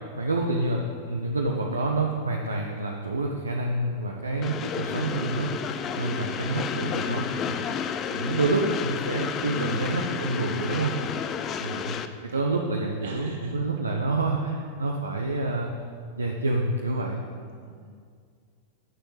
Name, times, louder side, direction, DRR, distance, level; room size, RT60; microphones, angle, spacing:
voice 1, 0.1-5.5 5.9-7.6 8.1-11.0 11.6-15.7 16.2-17.2, right 2 dB, 75° right, 1 dB, 0.8 m, -28 dB
Train, 4.4-12.1, left 7 dB, 30° left, 0.6 m, -31 dB
voice 2, 11.2-11.9 12.2-12.4 13.0-14.0 17.5-17.9, right 3 dB, 60° right, -1 dB, 2.3 m, -47 dB
9.0 x 6.6 x 7.2 m, 2.1 s
figure-of-eight pair, 90°, 0 cm